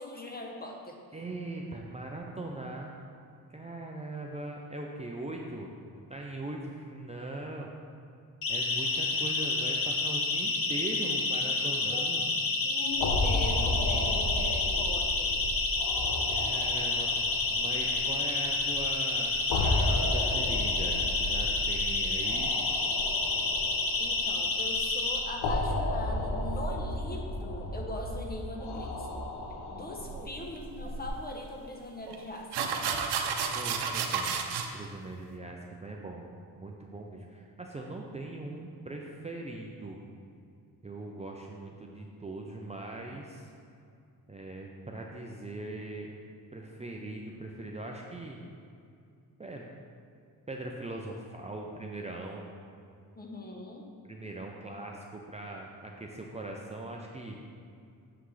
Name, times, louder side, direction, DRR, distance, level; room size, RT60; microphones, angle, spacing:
voice 1, 0.0-0.9 11.9-12.3 12.6-15.4 24.0-29.1 29.7-32.9 53.2-53.8, left 1 dB, 25° left, 1 dB, 0.9 m, -41 dB
voice 2, 1.1-2.9 3.5-7.7 8.5-12.3 16.3-17.1 17.5-22.5 30.0-30.3 33.5-34.4 34.7-36.3 36.6-40.0 40.8-43.5 44.3-46.1 46.5-48.4 49.4-49.6 50.5-52.4 54.0-57.4, right 2 dB, 20° right, -1 dB, 0.5 m, -40 dB
Siren, 8.4-25.2, left 3 dB, 60° left, 1.0 m, -29 dB
sound 1, 12.9-31.1, left 1 dB, 85° left, 0.9 m, -34 dB
sound 2, 30.9-31.0 32.1-32.2 32.5-34.7, right 6 dB, 85° right, 0.7 m, -31 dB
6.9 x 5.8 x 3.2 m, 2.4 s
cardioid pair, 90°, 39 cm